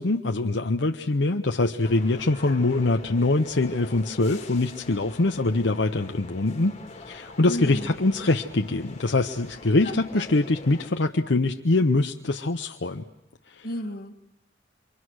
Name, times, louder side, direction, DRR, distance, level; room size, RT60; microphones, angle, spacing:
voice 1, 0.0-13.0 13.5-13.7, left 2 dB, 70° left, 4 dB, 0.9 m, -24 dB
sound 1, 1.8-10.9, left 2 dB, 35° left, 2.4 m, -44 dB
voice 2, 7.5-8.3 9.8-10.2 13.6-14.2, left 1 dB, 50° left, 3 dB, 1.8 m, -35 dB
28.5 x 24.5 x 6.4 m, 0.99 s
head